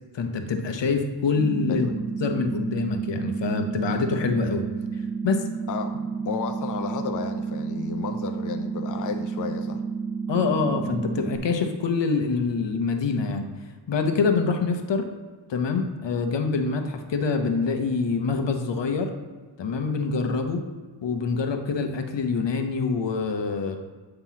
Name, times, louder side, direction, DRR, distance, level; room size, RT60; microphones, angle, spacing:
voice 1, 0.1-1.9 2.2-4.6 5.2-5.4 10.3-13.5 13.9-15.1 15.5-19.1 19.6-20.6 21.0-23.8, left 4 dB, 75° left, 5 dB, 0.9 m, -25 dB
sound 1, 1.4-11.4, right 5 dB, 5° left, 0.7 m, -31 dB
voice 2, 1.7-2.0 5.7-5.9 6.2-9.8, left 6 dB, 45° left, 5 dB, 0.5 m, -32 dB
8.7 x 3.0 x 5.7 m, 1.4 s
wide cardioid pair, 140°, 43 cm